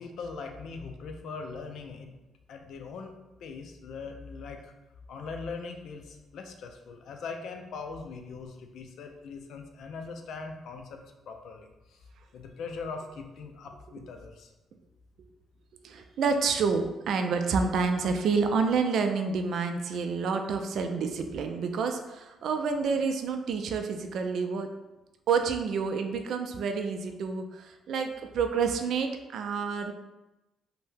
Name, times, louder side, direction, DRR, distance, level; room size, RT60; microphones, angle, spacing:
voice 1, 0.0-2.1 2.5-4.7 5.1-11.0 11.3-12.0 12.3-14.5, left 4 dB, 70° left, 4 dB, 0.4 m, -41 dB
voice 2, 15.8-24.7 25.3-29.9, right 5 dB, 70° right, 5 dB, 0.3 m, -28 dB
2.6 x 2.1 x 3.5 m, 1.0 s
cardioid pair, 85°, 0 cm